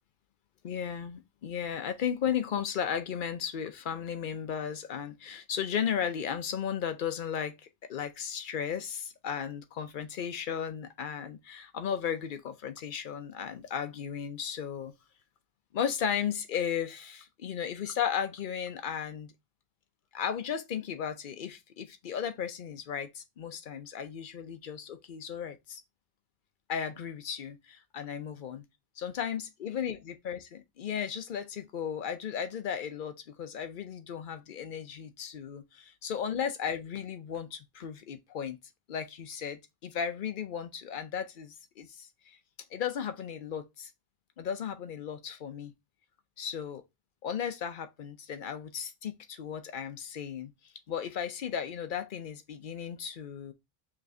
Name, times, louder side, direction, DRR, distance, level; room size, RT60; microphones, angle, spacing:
voice 1, 0.6-7.6 7.9-14.9 15.7-19.3 20.1-25.8 26.7-28.6 29.0-38.6 38.9-42.4 42.7-43.9 44.4-45.7 46.4-46.8 47.2-53.5, left 8 dB, 60° left, 0.7 m, -35 dB
5.1 x 3.2 x 2.6 m
omnidirectional pair, 1.1 m